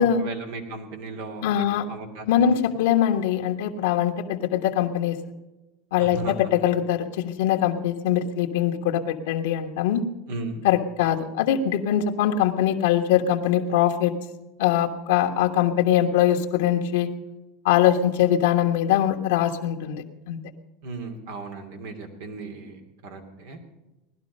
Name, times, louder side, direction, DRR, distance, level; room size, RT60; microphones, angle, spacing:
voice 1, 0.0-2.5 6.0-6.3 10.3-10.6 20.8-23.6, right 3 dB, 80° right, 4 dB, 2.7 m, -36 dB
voice 2, 1.4-1.8 2.3-5.2 5.9-10.0 10.6-14.1 14.6-17.1 17.6-20.4, left 10 dB, 85° left, 1 dB, 1.3 m, -22 dB
18.5 x 11.5 x 5.4 m, 1.0 s
supercardioid pair, 120°, 0 cm